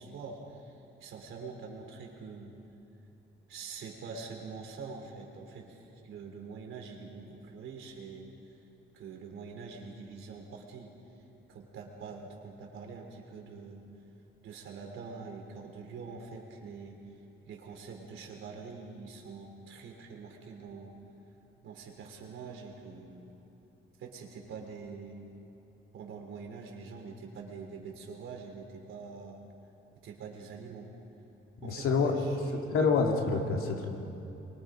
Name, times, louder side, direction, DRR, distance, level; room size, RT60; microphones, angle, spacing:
voice 1, 0.0-2.5 3.5-8.5 8.9-10.9 11.5-13.9 14.4-17.0 17.5-21.0 21.6-23.3 24.0-25.2 25.9-29.4 30.0-30.9 31.6-32.3 32.7-32.9, right 4 dB, 70° right, 2 dB, 3.6 m, -45 dB
voice 2, 31.6-32.1 32.7-33.9, left 4 dB, 80° left, 1 dB, 2.8 m, -27 dB
25.0 x 23.5 x 5.1 m, 3.0 s
cardioid pair, 160°, 21 cm